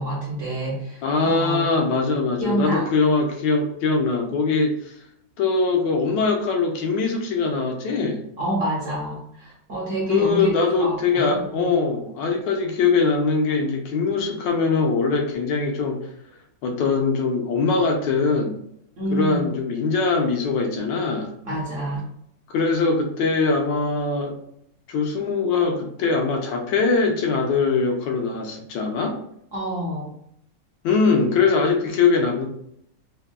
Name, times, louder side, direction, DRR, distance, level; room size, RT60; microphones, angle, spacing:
voice 1, 0.0-1.7 2.4-2.9 8.4-10.5 10.8-11.7 19.0-19.5 21.4-22.0 29.5-30.1, right 1 dB, 60° right, -5 dB, 0.9 m, -27 dB
voice 2, 1.0-5.0 5.4-8.2 10.1-16.1 16.6-18.6 19.1-21.3 22.5-24.4 24.9-29.2 30.8-32.5, left 4 dB, 75° left, 3 dB, 1.2 m, -22 dB
3.4 x 2.2 x 2.2 m, 0.73 s
omnidirectional pair, 2.1 m